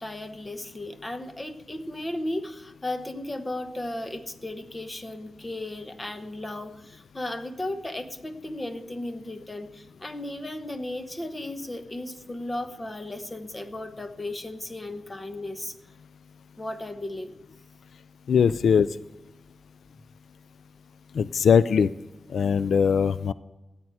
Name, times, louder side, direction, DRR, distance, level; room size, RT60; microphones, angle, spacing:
voice 1, 0.0-15.7 16.6-17.4 18.5-18.6, left 1 dB, 15° left, 7 dB, 1.0 m, -35 dB
voice 2, 18.3-18.9 21.1-21.9 22.3-23.3, left 6 dB, 80° left, 16 dB, 0.4 m, -20 dB
14.0 x 9.0 x 7.9 m, 1.1 s
wide cardioid pair, 175°, 0 cm